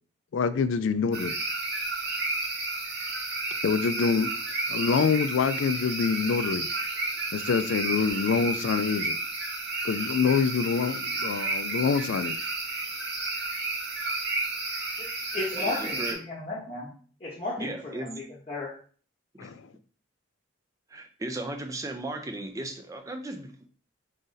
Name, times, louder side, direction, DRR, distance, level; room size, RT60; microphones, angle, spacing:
voice 1, 0.3-1.3 3.6-4.3 4.7-6.7 7.3-9.2 9.8-12.4 19.4-19.6, left 5 dB, 65° left, 0.3 m, -26 dB
sound 1, 1.1-16.1, right 3 dB, 50° right, 0.8 m, -32 dB
voice 2, 15.0-16.9 17.2-18.7, left 2 dB, 30° left, 0.8 m, -34 dB
voice 3, 15.5-16.2 17.6-18.1 19.3-19.5 20.9-23.7, right 2 dB, 15° right, 0.4 m, -36 dB
4.1 x 2.6 x 3.8 m
head